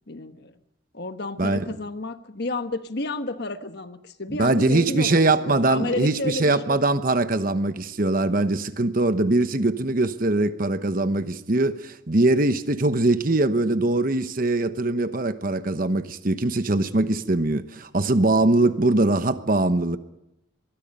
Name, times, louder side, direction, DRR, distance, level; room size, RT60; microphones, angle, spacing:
voice 1, 0.1-0.6 0.9-6.8, left 2 dB, 50° left, 1.3 m, -31 dB
voice 2, 4.3-20.0, right 2 dB, 45° right, 1.0 m, -22 dB
25.0 x 22.0 x 5.4 m
head